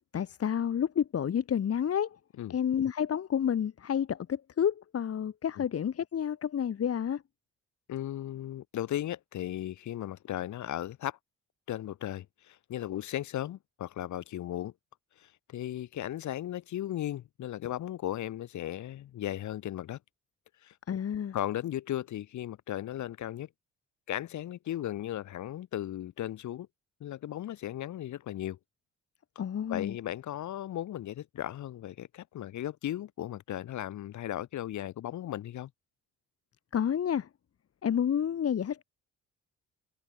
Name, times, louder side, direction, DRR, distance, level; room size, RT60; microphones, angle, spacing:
voice 1, 0.1-2.2 2.5-7.2 20.9-21.4 29.4-30.0 36.7-37.3 37.8-38.8, left 8 dB, 50° left, 2.2 m, -30 dB
voice 2, 7.9-11.2 11.7-14.7 15.2-20.0 20.6-20.7 21.3-23.5 24.1-26.7 27.0-28.6 29.7-35.7, left 12 dB, 70° left, 2.0 m, -36 dB
cardioid pair, 90°, 30 cm